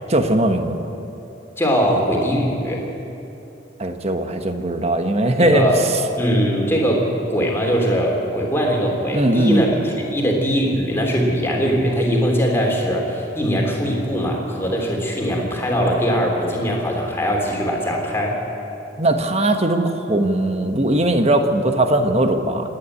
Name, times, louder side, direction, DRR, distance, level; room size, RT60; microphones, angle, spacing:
voice 1, 0.1-0.8 3.8-5.6 9.1-9.6 19.0-22.7, right 1 dB, 35° right, 7 dB, 1.3 m, -19 dB
voice 2, 1.6-2.8 5.4-5.8 6.2-18.4, equal, 15° left, -1 dB, 3.2 m, -21 dB
26.5 x 10.0 x 9.8 m, 2.9 s
head